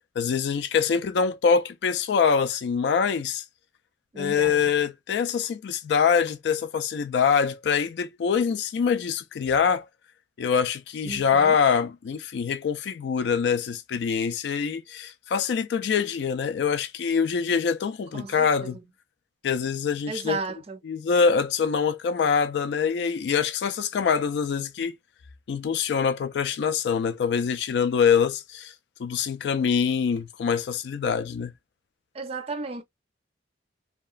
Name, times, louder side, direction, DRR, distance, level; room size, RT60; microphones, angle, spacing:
voice 1, 0.2-3.4 4.2-9.9 10.4-18.8 19.4-20.4 20.8-24.9 25.5-28.7 29.0-31.5, left 6 dB, 65° left, 0.3 m, -24 dB
voice 2, 4.1-4.7 11.0-11.6 18.1-18.8 20.1-20.8 32.1-32.8, right 4 dB, 35° right, 0.5 m, -34 dB
2.8 x 2.1 x 2.4 m
head